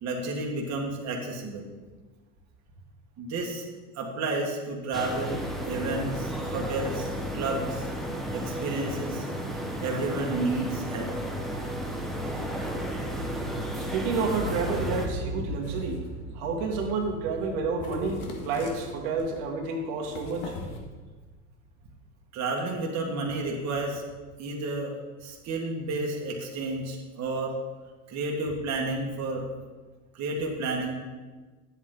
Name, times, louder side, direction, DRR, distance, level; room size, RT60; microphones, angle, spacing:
voice 1, 0.0-1.7 3.2-3.6 4.0-7.9 8.3-9.3 9.8-11.1 22.3-24.0 24.4-24.9 25.2-27.6 28.1-29.4 30.1-30.9, right 2 dB, 35° right, -1 dB, 1.7 m, -31 dB
sound 1, 4.9-15.1, equal, ahead, 0.9 m, -33 dB
voice 2, 13.8-16.0 16.3-20.5, right 4 dB, 60° right, 0 dB, 1.7 m, -30 dB
Explosion, 14.2-20.3 20.6-20.7, equal, 15° right, 2.2 m, -39 dB
sound 2, 15.6-16.1 16.7-17.1 17.4-17.5 17.8-19.4 20.0-20.8, left 3 dB, 65° left, 1.8 m, -41 dB
9.7 x 7.9 x 3.8 m, 1.3 s
supercardioid pair, 110°, 46 cm